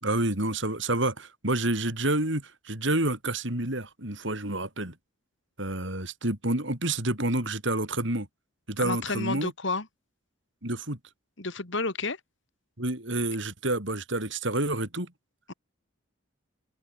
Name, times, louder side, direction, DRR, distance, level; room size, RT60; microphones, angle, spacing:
voice 1, 0.0-4.9 5.6-8.3 8.7-9.5 10.6-11.0 12.8-15.1, right 2 dB, 60° right, 4.8 m, -29 dB
voice 2, 8.8-9.9 11.4-12.2 15.5-15.6, left 3 dB, 60° left, 2.4 m, -30 dB
open air
head